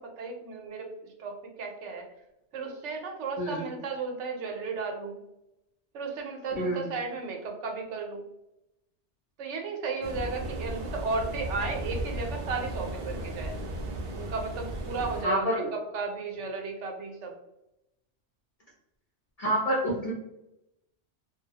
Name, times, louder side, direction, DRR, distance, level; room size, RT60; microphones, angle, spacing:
voice 1, 0.0-2.1 2.5-5.2 5.9-8.3 9.4-13.5 14.1-17.3, right 4 dB, 85° right, 2 dB, 0.9 m, -34 dB
voice 2, 6.5-6.9 15.2-15.7 19.4-20.1, equal, 45° left, -4 dB, 0.5 m, -27 dB
sound 1, 10.0-15.2, right 1 dB, 60° right, 0.6 m, -35 dB
2.2 x 2.0 x 2.7 m, 0.88 s
omnidirectional pair, 1.2 m